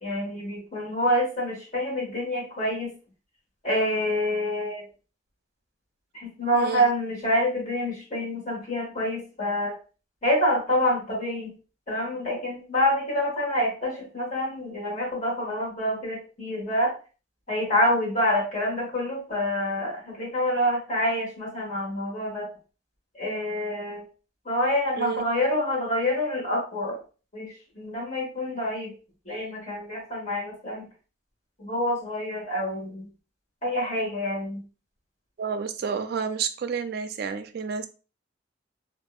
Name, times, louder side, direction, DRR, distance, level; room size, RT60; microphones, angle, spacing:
voice 1, 0.0-2.9 3.6-4.8 6.1-9.7 10.2-11.5 11.9-17.0 17.5-22.5 23.1-24.0 24.4-27.0 27.3-28.9 29.2-30.9 31.6-33.1 33.6-34.6, left 1 dB, 40° left, -4 dB, 1.4 m, -27 dB
voice 2, 6.5-6.9 25.0-25.2 35.4-37.9, right 6 dB, 55° right, 8 dB, 0.3 m, -30 dB
2.7 x 2.6 x 2.3 m, 0.35 s
head